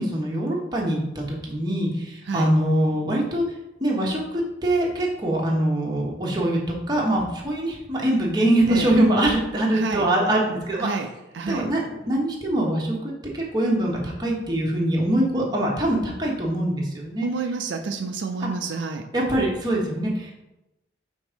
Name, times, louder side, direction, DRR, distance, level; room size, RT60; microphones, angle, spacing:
voice 1, 0.0-3.4 3.8-6.6 6.9-10.9 11.5-17.3 18.4-18.5 19.1-20.3, right 1 dB, 20° right, -3 dB, 1.2 m, -23 dB
voice 2, 9.7-10.1 10.8-11.1 11.3-11.7 17.2-19.0, right 4 dB, 75° right, 5 dB, 0.5 m, -29 dB
5.1 x 3.6 x 5.1 m, 0.94 s
head